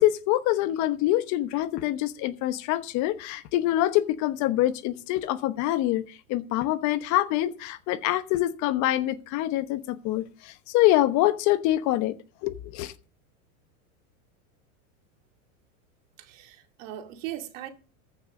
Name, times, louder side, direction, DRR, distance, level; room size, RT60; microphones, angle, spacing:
voice 1, 0.0-12.2 12.4-12.9, left 14 dB, 45° left, 1.0 m, -25 dB
voice 2, 16.2-17.7, right 12 dB, 60° right, 2.3 m, -39 dB
14.0 x 6.5 x 6.1 m
supercardioid pair, 125°, 42 cm